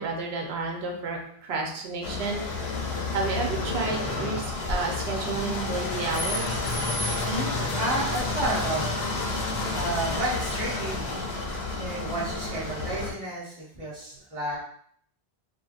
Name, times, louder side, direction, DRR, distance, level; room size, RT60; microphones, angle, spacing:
voice 1, 0.0-2.4 3.1-6.6, right 3 dB, 85° right, 1 dB, 0.9 m, -31 dB
sound 1, 2.0-13.1, left 3 dB, 80° left, 0.9 m, -30 dB
sound 2, 4.5-5.3 5.7-5.8 6.1-6.2 6.6-6.8 7.2-7.3 7.7-7.9 8.1-8.3 8.6-8.7 11.8-11.9, equal, 50° left, 0.9 m, -39 dB
voice 2, 7.2-8.9 9.4-11.0 11.8-14.6, right 2 dB, 35° right, -5 dB, 0.8 m, -31 dB
2.7 x 2.4 x 2.3 m, 0.63 s
omnidirectional pair, 1.0 m